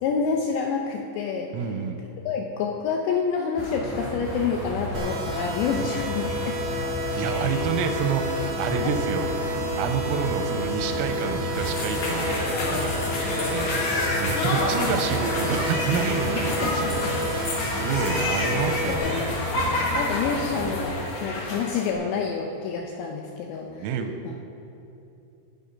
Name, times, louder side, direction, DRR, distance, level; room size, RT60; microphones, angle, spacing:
voice 1, 0.0-1.5 2.3-6.6 7.2-7.6 8.8-9.0 13.4-13.6 16.4-17.1 18.9-19.4 19.9-23.9 24.2-24.4, left 5 dB, 85° left, 2 dB, 2.5 m, -28 dB
voice 2, 1.5-2.0 5.8-6.0 7.2-9.3 9.8-12.3 12.6-13.7 14.2-17.2 17.8-19.4 23.7-24.1, right 6 dB, 90° right, 6 dB, 3.4 m, -28 dB
sound 1, 3.6-21.0, left 1 dB, 40° left, 5.0 m, -33 dB
sound 2, 4.9-18.9, right 1 dB, 75° right, 1.6 m, -31 dB
sound 3, 11.5-21.9, left 2 dB, 60° left, 2.4 m, -29 dB
19.0 x 7.0 x 5.5 m, 2.9 s
omnidirectional pair, 5.9 m